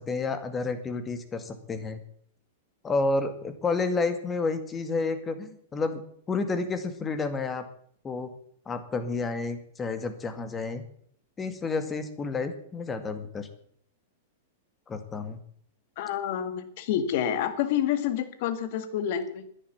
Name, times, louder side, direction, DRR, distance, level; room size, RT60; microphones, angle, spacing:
voice 1, 0.0-2.0 2.8-6.0 6.3-7.6 8.0-8.3 8.7-10.8 11.4-13.5 14.9-15.4, left 3 dB, 20° left, 10 dB, 2.1 m, -30 dB
voice 2, 16.0-19.4, left 10 dB, 60° left, 11 dB, 2.0 m, -28 dB
11.0 x 10.0 x 8.5 m, 0.63 s
hypercardioid pair, 115°, 0 cm